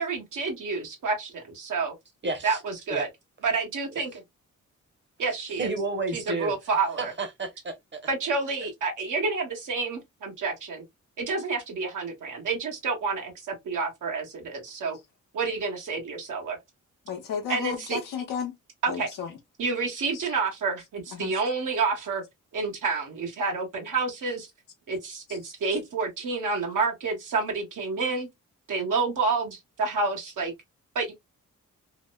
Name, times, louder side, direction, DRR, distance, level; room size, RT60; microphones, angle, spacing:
voice 1, 0.0-1.9 2.4-3.1 3.4-4.1 5.2-5.7 6.1-7.1 8.1-10.8 11.2-15.0 15.3-16.6 17.5-18.0 18.8-19.1 19.6-22.2 22.5-24.5 24.9-28.3 28.7-30.5 30.9-31.1, right 4 dB, 70° right, 1.1 m, -29 dB
voice 2, 2.2-2.6 2.9-3.1 5.6-6.5 7.0-8.0, right 3 dB, 35° right, 1.0 m, -31 dB
voice 3, 17.1-18.5 18.9-19.3 20.1-20.3 21.1-21.4 25.3-25.4, left 6 dB, 80° left, 0.8 m, -33 dB
2.9 x 2.1 x 2.2 m
cardioid pair, 60°, 32 cm